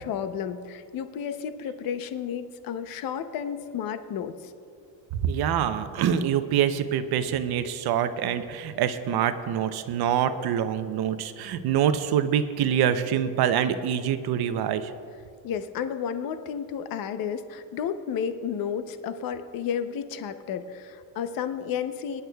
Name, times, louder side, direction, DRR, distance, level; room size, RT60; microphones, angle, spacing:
voice 1, 0.0-4.5 15.4-22.2, left 8 dB, 50° left, 9 dB, 0.7 m, -32 dB
voice 2, 5.1-14.9, right 9 dB, 55° right, 10 dB, 0.7 m, -25 dB
24.5 x 11.0 x 2.3 m, 2.5 s
cardioid pair, 160°, 47 cm